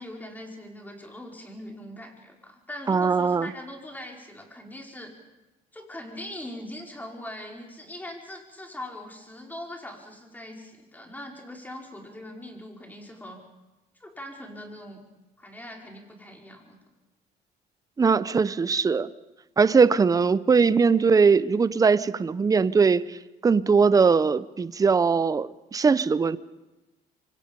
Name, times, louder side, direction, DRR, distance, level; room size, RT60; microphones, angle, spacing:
voice 1, 0.0-5.2 5.7-13.4 14.0-15.0 15.4-16.8, left 1 dB, 10° left, 5.0 m, -41 dB
voice 2, 2.9-3.5 18.0-19.1 19.6-23.1 23.4-26.4, right 5 dB, 20° right, 0.7 m, -20 dB
26.5 x 24.5 x 5.4 m
cardioid pair, 110°, 17 cm